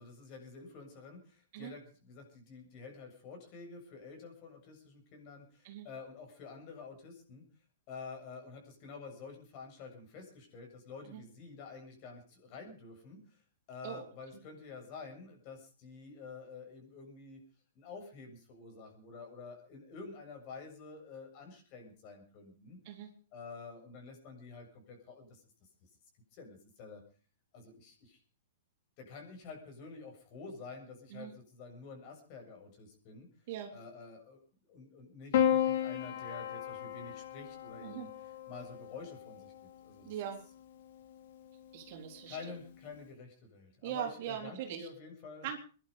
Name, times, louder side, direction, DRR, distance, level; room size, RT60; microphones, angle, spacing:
voice 1, 0.0-7.5 7.9-13.4 13.7-17.4 17.8-22.8 23.3-25.4 26.3-27.0 27.5-28.2 29.0-33.3 33.7-34.4 34.7-39.5 39.8-40.1 42.3-45.5, left 4 dB, 35° left, 3 dB, 7.3 m, -49 dB
Piano, 35.3-39.8 41.0-41.7, left 9 dB, 55° left, 3.0 m, -34 dB
voice 2, 40.0-40.4 41.7-42.4 43.8-44.9 45.4-45.6, right 10 dB, 45° right, 4 dB, 3.7 m, -40 dB
22.5 x 11.5 x 5.2 m, 0.40 s
hypercardioid pair, 160°, 0 cm